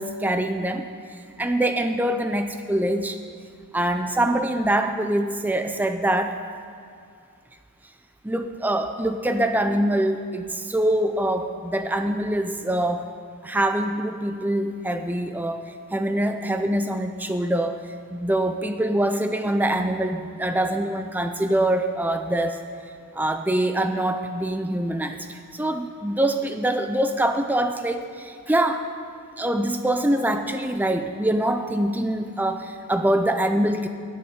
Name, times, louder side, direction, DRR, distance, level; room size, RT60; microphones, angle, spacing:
voice 1, 0.0-3.2 3.7-6.4 8.2-13.1 13.4-15.6 15.9-17.8 18.1-22.6 23.1-28.8 29.4-33.9, right 1 dB, 10° right, 7 dB, 0.4 m, -24 dB
11.0 x 6.5 x 8.7 m, 2.4 s
head